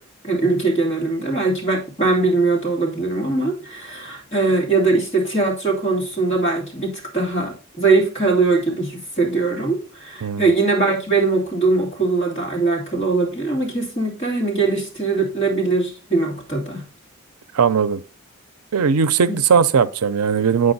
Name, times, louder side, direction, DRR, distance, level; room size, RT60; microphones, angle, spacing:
voice 1, 0.2-16.8 19.3-19.4, right 3 dB, 30° left, 2.6 m, -21 dB
voice 2, 17.5-18.0 18.7-20.7, right 6 dB, 85° right, 0.5 m, -18 dB
8.7 x 4.9 x 4.1 m
head